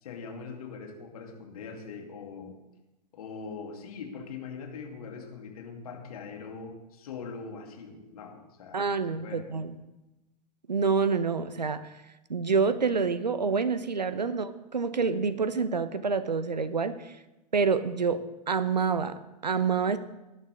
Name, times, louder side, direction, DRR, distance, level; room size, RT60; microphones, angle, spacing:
voice 1, 0.0-2.6 3.1-9.5 14.2-14.3, left 5 dB, 60° left, 3 dB, 2.6 m, -42 dB
voice 2, 8.7-9.8 10.7-11.9 12.3-17.1 17.5-20.0, right 5 dB, 85° right, 13 dB, 0.9 m, -27 dB
18.5 x 11.0 x 3.7 m, 1.0 s
figure-of-eight pair, 105°, 21 cm